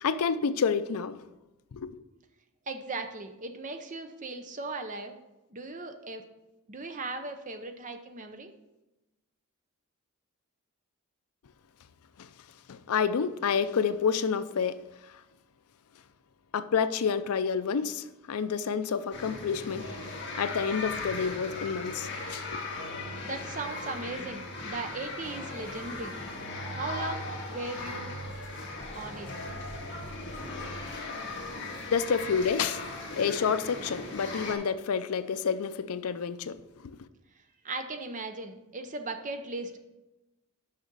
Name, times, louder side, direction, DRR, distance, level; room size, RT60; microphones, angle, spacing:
voice 1, 0.0-1.2 1.7-2.0 12.2-12.3 12.7-14.8 16.5-19.8 20.4-22.6 31.9-32.9 33.2-36.6 36.8-36.9, left 6 dB, 75° left, 0.5 m, -29 dB
voice 2, 2.7-5.2 5.5-6.3 6.7-8.5 23.2-26.2 26.7-28.1 28.9-29.3 37.6-39.8, right 3 dB, 35° right, 0.7 m, -38 dB
sound 1, 19.1-34.6, left 2 dB, 50° left, 1.6 m, -38 dB
Writing, 28.2-32.9, equal, 5° right, 1.7 m, -52 dB
6.5 x 6.0 x 5.3 m
head